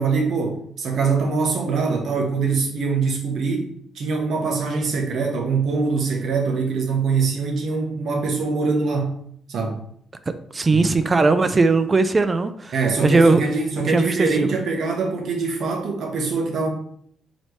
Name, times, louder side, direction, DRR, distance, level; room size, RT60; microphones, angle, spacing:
voice 1, 0.0-9.2 9.5-9.8 10.7-10.9 12.7-16.7, right 4 dB, 65° right, 2 dB, 0.9 m, -23 dB
voice 2, 10.5-12.7 13.0-13.4 13.9-14.3, right 3 dB, 30° right, 11 dB, 0.3 m, -18 dB
4.0 x 3.1 x 3.3 m, 0.65 s
cardioid pair, 90°, 0 cm